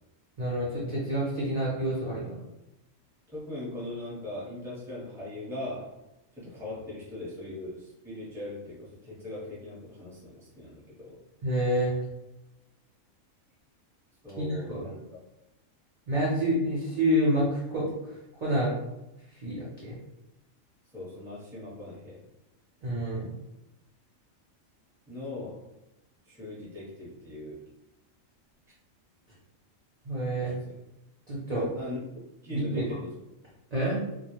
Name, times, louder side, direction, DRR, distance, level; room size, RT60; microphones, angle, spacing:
voice 1, 0.4-2.4 11.4-12.0 14.4-14.9 16.1-17.9 18.4-18.7 19.4-19.9 22.8-23.3 30.0-30.5 31.3-31.7 32.5-32.8 33.7-34.0, equal, 50° right, -7 dB, 0.5 m, -28 dB
voice 2, 3.3-5.9 6.3-11.2 14.2-15.0 20.9-22.2 25.1-25.6 26.3-27.6 30.4-30.6 31.5-32.0 32.4-33.1, left 2 dB, 5° right, -7 dB, 0.6 m, -39 dB
2.3 x 2.0 x 2.9 m, 0.94 s
omnidirectional pair, 1.4 m